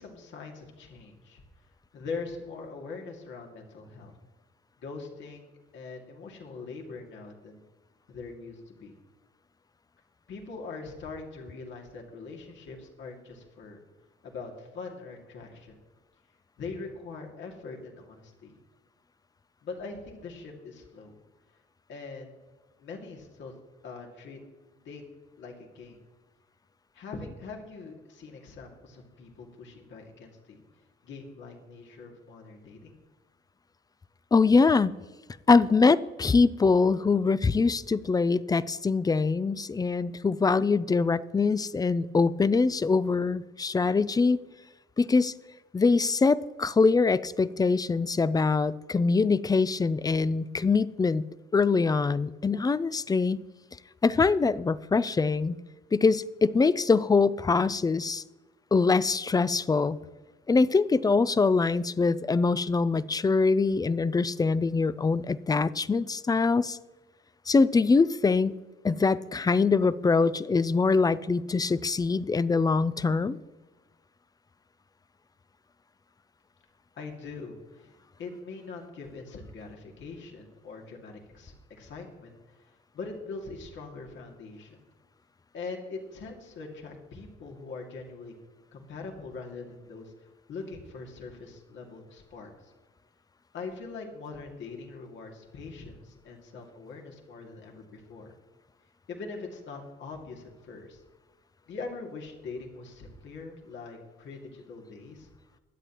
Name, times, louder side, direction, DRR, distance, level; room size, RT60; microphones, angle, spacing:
voice 1, 0.0-1.4 1.9-4.1 4.8-7.6 8.1-9.0 10.3-13.8 14.2-15.8 16.6-18.6 19.6-21.1 21.9-22.4 22.8-23.6 23.8-24.4 24.8-25.0 25.4-26.0 26.9-30.6 31.0-33.0 77.0-77.9 78.2-84.8 85.5-88.3 88.7-92.7 93.5-98.3 99.1-101.0 101.7-105.3, left 4 dB, 70° left, 0 dB, 2.2 m, -42 dB
voice 2, 34.3-35.0 35.5-44.4 45.0-45.3 45.7-51.2 51.5-53.4 54.0-55.6 55.9-58.2 58.7-60.0 60.5-66.8 67.5-68.6 68.8-73.4, left 4 dB, 20° left, 18 dB, 0.4 m, -23 dB
22.5 x 8.2 x 3.0 m, 1.2 s
cardioid pair, 90°, 20 cm